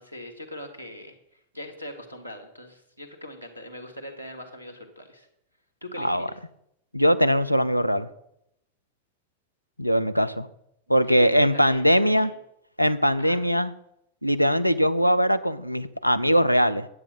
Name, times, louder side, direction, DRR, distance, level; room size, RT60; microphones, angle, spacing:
voice 1, 0.0-5.3 5.8-6.3 11.0-12.4 13.2-13.4, left 1 dB, 90° right, 6 dB, 1.6 m, -41 dB
voice 2, 6.0-6.3 6.9-8.1 9.8-10.5 10.9-12.3 12.8-13.7 14.2-16.9, equal, 90° left, 14 dB, 0.5 m, -21 dB
9.7 x 8.4 x 5.4 m, 0.78 s
figure-of-eight pair, 90°, 0 cm